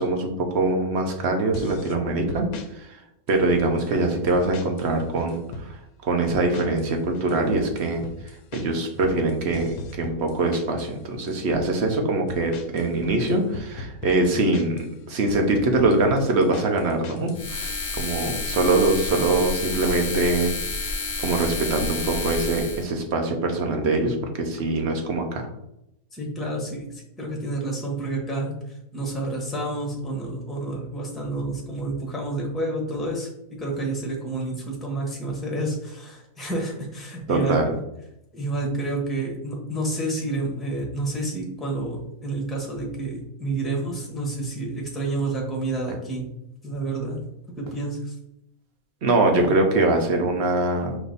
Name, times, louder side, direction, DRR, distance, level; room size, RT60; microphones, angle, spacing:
voice 1, 0.0-2.5 2.7-3.0 3.3-5.8 6.0-8.0 8.5-20.5 21.2-25.5 37.3-37.7 49.0-51.0, right 2 dB, 55° right, 4 dB, 0.9 m, -23 dB
sound 1, 1.5-2.0 2.3-2.7 3.3-3.9 4.3-4.9 5.2-5.7 6.3-6.9 7.1-10.9 11.3-11.7 12.3-14.9 15.3-17.4, left 3 dB, 85° left, 1.1 m, -37 dB
sound 2, 17.3-22.9, left 3 dB, 50° left, 0.4 m, -30 dB
voice 2, 26.1-28.6 28.9-33.3 33.6-37.6 38.3-46.3 46.6-47.2 47.6-48.2, right 2 dB, ahead, -1 dB, 0.9 m, -29 dB
sound 3, 45.9-46.1 47.7-47.9 49.3-49.7 50.1-50.2, right 2 dB, 85° right, 1.2 m, -38 dB
5.0 x 2.6 x 4.0 m, 0.82 s
omnidirectional pair, 1.5 m